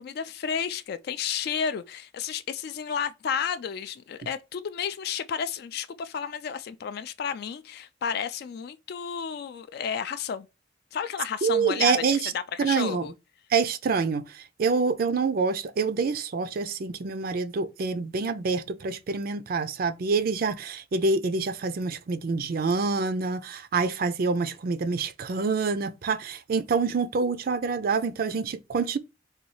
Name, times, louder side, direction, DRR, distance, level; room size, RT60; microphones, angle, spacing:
voice 1, 0.0-10.5 10.9-13.1, left 7 dB, 60° left, 0.3 m, -32 dB
voice 2, 11.4-12.3 12.6-13.1 13.5-29.0, right 4 dB, 55° right, 0.4 m, -26 dB
4.0 x 2.3 x 3.0 m
head